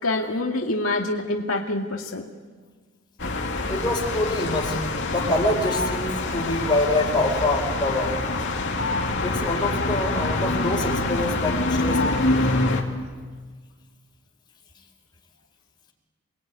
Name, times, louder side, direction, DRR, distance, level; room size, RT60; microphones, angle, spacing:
voice 1, 0.0-2.3, left 2 dB, 80° left, 1 dB, 2.2 m, -26 dB
sound 1, 3.2-12.8, left 2 dB, 60° left, 3.1 m, -25 dB
voice 2, 3.7-4.8 5.1-8.2 9.2-12.4, left 1 dB, 20° left, 0 dB, 4.8 m, -25 dB
28.5 x 21.5 x 9.7 m, 1.5 s
head